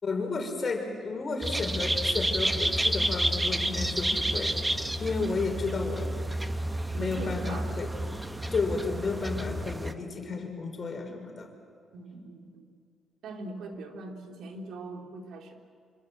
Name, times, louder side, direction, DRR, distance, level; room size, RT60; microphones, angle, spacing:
voice 1, 0.0-4.6 5.0-6.1 6.9-7.9 8.5-11.5, left 3 dB, 40° left, 3 dB, 5.8 m, -32 dB
sound 1, 1.4-9.9, right 1 dB, 10° right, 1.4 m, -30 dB
voice 2, 6.9-7.8 11.9-12.7 13.2-15.6, right 2 dB, 75° right, 2 dB, 3.6 m, -41 dB
27.0 x 26.5 x 7.9 m, 2.2 s
cardioid pair, 90°, 0 cm